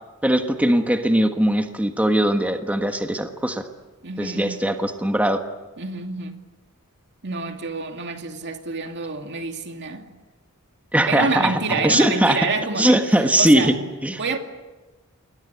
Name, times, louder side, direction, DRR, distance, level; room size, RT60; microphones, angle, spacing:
voice 1, 0.2-3.6 4.2-5.4 10.9-11.5 11.8-12.4 12.8-13.7 14.0-14.2, right 1 dB, 5° right, 1.4 m, -20 dB
voice 2, 4.0-4.7 5.8-6.4 7.2-10.1 11.1-13.0 13.4-13.8 14.1-14.4, right 4 dB, 50° right, 2.4 m, -27 dB
28.5 x 22.0 x 8.1 m
head